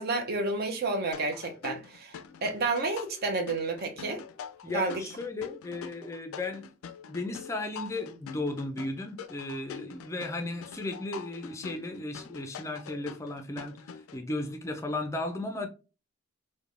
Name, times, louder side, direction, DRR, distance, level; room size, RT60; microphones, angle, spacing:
voice 1, 0.0-4.2 4.7-5.0, right 3 dB, 50° right, 0.6 m, -30 dB
sound 1, 1.1-14.2, left 7 dB, 85° left, 0.3 m, -45 dB
voice 2, 4.6-6.7 7.1-15.7, left 2 dB, 15° left, 0.4 m, -35 dB
3.2 x 2.1 x 2.4 m
head